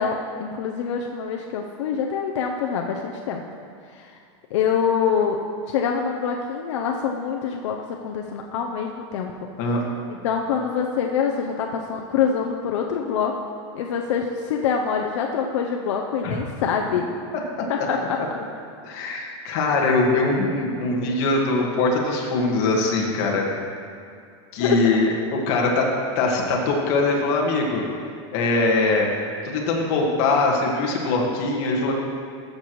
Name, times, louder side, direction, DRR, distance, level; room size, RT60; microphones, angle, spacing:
voice 1, 0.0-3.5 3.9-4.2 4.5-5.4 5.7-9.3 10.1-13.4 13.7-17.1 17.7-18.0 24.6-24.8, left 7 dB, 85° left, 1 dB, 0.7 m, -25 dB
voice 2, 18.8-23.5 24.5-25.9 26.1-27.8 28.3-29.1 29.5-31.9, left 3 dB, 50° left, -1 dB, 1.6 m, -22 dB
14.0 x 6.7 x 3.1 m, 2.3 s
supercardioid pair, 155°, 15 cm